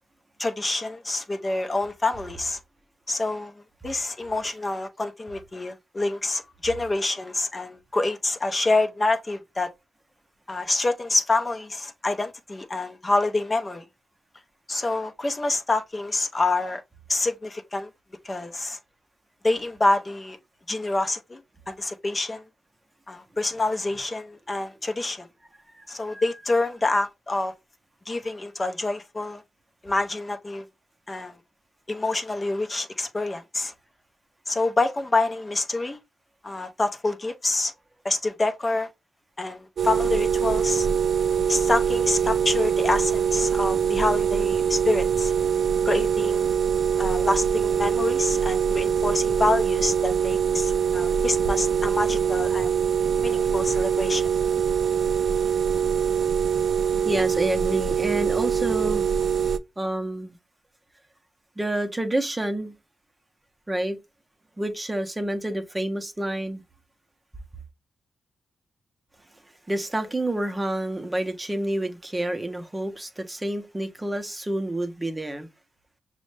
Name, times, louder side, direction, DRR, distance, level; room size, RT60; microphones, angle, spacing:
voice 1, 0.4-2.6 3.1-9.7 10.5-13.8 14.7-16.8 17.1-17.9 18.2-18.8 19.4-20.4 20.7-21.4 21.7-22.4 23.1-25.3 25.9-27.5 28.1-29.4 29.8-30.7 31.1-31.4 31.9-33.7 34.5-36.0 36.4-37.7 38.0-38.9 39.4-40.9 41.5-45.3 45.8-46.5 47.0-52.8 53.2-54.3, left 2 dB, 25° left, 0.5 m, -27 dB
voice 2, 25.7-26.3 57.0-59.1 59.8-60.4 61.6-62.7 63.7-64.0 64.6-66.6 69.7-75.5, right 1 dB, 15° right, 0.6 m, -28 dB
sound 1, 39.8-59.6, right 7 dB, 65° right, 0.3 m, -23 dB
6.1 x 2.1 x 3.1 m
cardioid pair, 110°, 0 cm